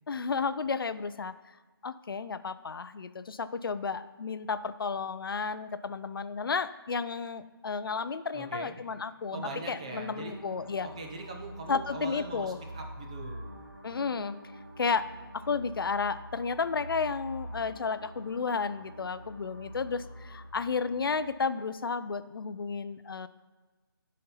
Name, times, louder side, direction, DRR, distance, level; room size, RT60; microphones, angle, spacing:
voice 1, 0.1-1.3 1.8-9.4 9.7-10.9 11.7-12.6 13.8-14.3 14.8-15.1 15.3-23.3, left 5 dB, 65° left, 13 dB, 0.4 m, -32 dB
voice 2, 8.3-8.7 9.3-10.4 10.8-13.4, right 3 dB, 15° right, 2 dB, 0.4 m, -41 dB
sound 1, 9.3-21.3, equal, 55° right, 1.5 m, -45 dB
10.5 x 4.2 x 3.9 m, 1.3 s
figure-of-eight pair, 165°, 13 cm